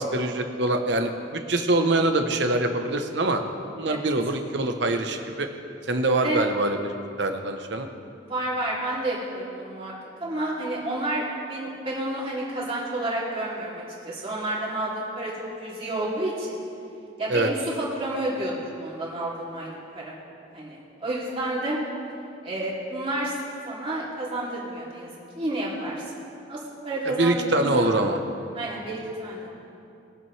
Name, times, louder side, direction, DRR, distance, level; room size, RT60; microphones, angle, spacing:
voice 1, 0.0-3.4 3.8-5.5 5.9-7.9 17.3-17.5 27.1-28.2, right 2 dB, 60° right, 6 dB, 0.9 m, -24 dB
voice 2, 8.2-9.9 10.2-15.3 15.6-16.6 17.2-20.1 20.5-21.8 22.4-23.3 23.7-25.1 25.4-26.2 26.5-27.9 28.5-29.5, right 1 dB, 30° right, -6 dB, 2.8 m, -30 dB
22.0 x 7.7 x 3.3 m, 2.6 s
head